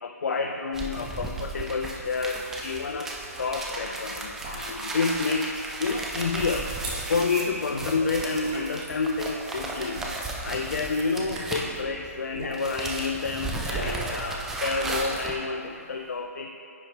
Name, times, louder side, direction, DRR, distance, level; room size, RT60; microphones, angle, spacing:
voice 1, 0.0-6.7 7.1-10.1 10.4-16.6, left 4 dB, 85° left, 3 dB, 0.4 m, -29 dB
sound 1, 0.7-12.2 12.4-15.4, right 2 dB, 5° right, 0.3 m, -35 dB
sound 2, 3.1-16.2, right 1 dB, 25° right, 1.3 m, -42 dB
9.6 x 4.5 x 3.1 m, 2.7 s
hypercardioid pair, 155°, 9 cm